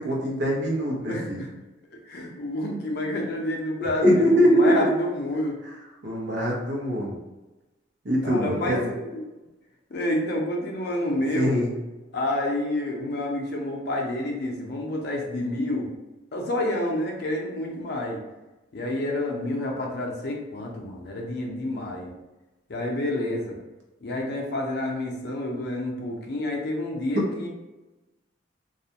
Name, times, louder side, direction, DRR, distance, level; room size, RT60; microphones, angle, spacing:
voice 1, 0.0-1.4 3.8-4.9 6.0-7.2 8.0-8.9 11.3-11.7, equal, 70° right, -3 dB, 0.7 m, -22 dB
voice 2, 1.1-1.5 2.1-5.6 8.2-9.2 9.9-11.6 12.1-15.9 16.3-18.2 18.7-22.1 22.7-23.6 24.0-27.5, left 1 dB, 60° left, 0 dB, 0.5 m, -29 dB
2.3 x 2.1 x 2.7 m, 1.1 s
head